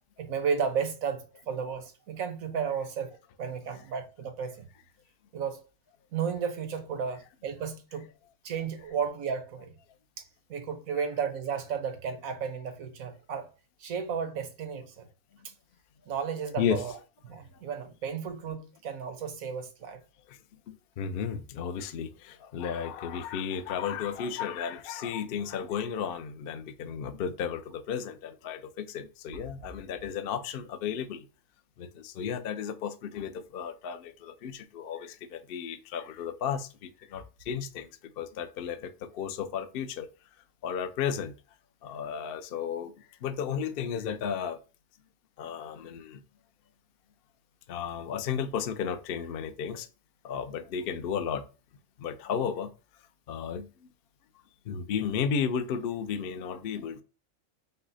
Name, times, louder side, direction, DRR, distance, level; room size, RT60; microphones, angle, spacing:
voice 1, 0.2-4.6 5.3-5.6 6.1-8.1 8.4-9.7 10.5-13.5 13.8-15.1 16.1-17.0 17.2-20.0, right 6 dB, 90° right, 1.3 m, -33 dB
voice 2, 20.7-31.3 31.8-37.9 38.2-40.1 40.6-41.3 41.8-42.9 43.2-44.6 45.4-46.2 47.7-49.9 50.2-51.4 52.0-52.7 53.3-53.7 54.7-57.0, left 7 dB, 60° left, 0.6 m, -33 dB
5.5 x 2.0 x 3.9 m
omnidirectional pair, 1.4 m